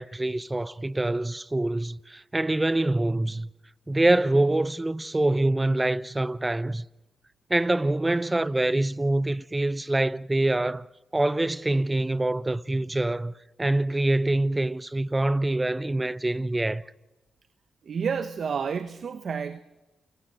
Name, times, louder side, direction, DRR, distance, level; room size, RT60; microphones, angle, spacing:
voice 1, 0.0-3.5 3.9-6.9 7.5-10.9 11.1-13.3 13.6-16.8, right 2 dB, 20° right, 0.7 m, -25 dB
voice 2, 17.9-19.6, right 6 dB, 60° right, 1.0 m, -30 dB
28.5 x 18.0 x 7.8 m
supercardioid pair, 55°, 0 cm